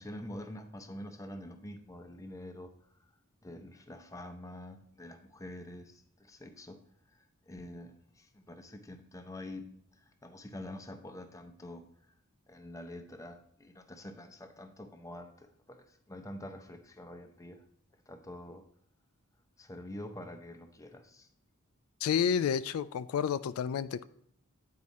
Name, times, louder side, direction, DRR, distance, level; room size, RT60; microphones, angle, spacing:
voice 1, 0.0-2.7 3.4-6.8 7.5-9.7 10.2-11.8 12.5-17.6 18.1-18.6 19.6-21.3, left 1 dB, 15° left, 7 dB, 0.6 m, -46 dB
voice 2, 22.0-24.0, left 7 dB, 80° left, 14 dB, 0.3 m, -30 dB
9.3 x 4.8 x 4.1 m, 0.68 s
head